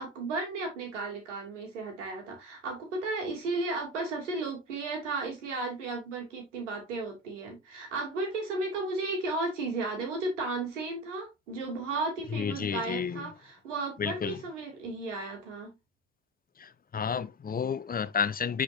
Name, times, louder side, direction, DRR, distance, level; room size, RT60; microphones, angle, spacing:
voice 1, 0.0-15.7, right 3 dB, 80° right, 2.9 m, -34 dB
voice 2, 12.3-13.2 14.0-14.4 16.6-18.6, left 6 dB, 25° left, 0.8 m, -31 dB
9.9 x 5.1 x 2.7 m
hypercardioid pair, 55°, 36 cm